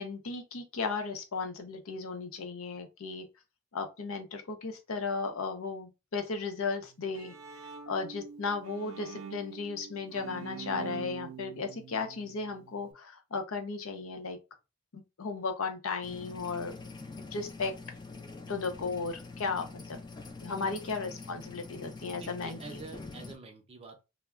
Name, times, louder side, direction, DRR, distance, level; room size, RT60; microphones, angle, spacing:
voice 1, 0.0-3.3 3.7-7.3 7.9-14.4 14.9-16.7 17.2-17.7 18.5-20.0 20.4-22.6, left 4 dB, 85° left, 0.6 m, -35 dB
Bowed string instrument, 6.8-12.9, right 7 dB, 80° right, 0.4 m, -45 dB
sound 1, 16.0-23.3, left 3 dB, 20° left, 0.4 m, -45 dB
voice 2, 20.5-20.9 22.1-24.0, right 3 dB, 30° right, 0.6 m, -48 dB
2.2 x 2.1 x 3.5 m
head